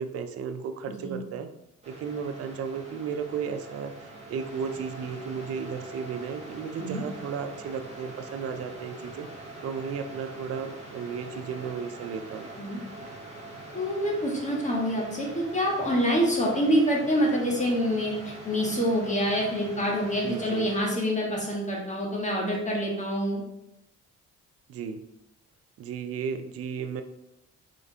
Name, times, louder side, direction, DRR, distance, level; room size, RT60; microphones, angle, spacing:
voice 1, 0.0-1.5 1.9-9.3 9.6-12.5 20.2-20.7 24.7-25.0 25.8-27.0, right 6 dB, 50° right, 8 dB, 0.4 m, -34 dB
voice 2, 0.9-1.2 6.8-7.0 12.6-12.8 13.7-18.1 18.4-23.4, equal, 25° left, -2 dB, 1.1 m, -26 dB
sound 1, 1.8-20.8, right 2 dB, 20° right, 1.2 m, -43 dB
3.8 x 3.3 x 2.7 m, 0.85 s
cardioid pair, 90°, 30 cm